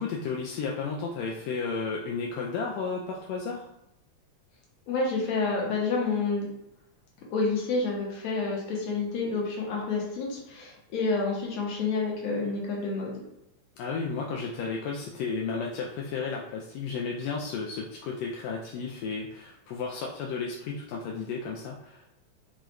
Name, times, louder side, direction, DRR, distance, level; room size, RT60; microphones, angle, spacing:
voice 1, 0.0-3.7 13.8-22.2, left 4 dB, 85° left, -1 dB, 1.5 m, -33 dB
voice 2, 4.9-6.5 7.3-13.2, left 3 dB, 70° left, -2 dB, 2.0 m, -29 dB
5.1 x 2.3 x 3.1 m, 0.83 s
omnidirectional pair, 3.6 m